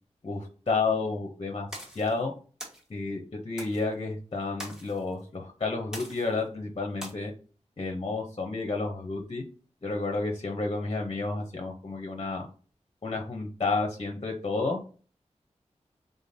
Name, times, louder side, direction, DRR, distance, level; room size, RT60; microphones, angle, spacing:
voice 1, 0.2-1.7 1.9-2.3 2.9-7.3 7.8-9.4 9.8-12.5 13.0-14.8, left 3 dB, 45° left, 2 dB, 0.7 m, -31 dB
sound 1, 1.7-2.1 2.6-2.8 3.6-3.8 4.6-5.0 5.9-6.4 7.0-7.1, equal, 5° right, 1.2 m, -41 dB
3.7 x 3.6 x 2.7 m, 0.39 s
wide cardioid pair, 95°, 12 cm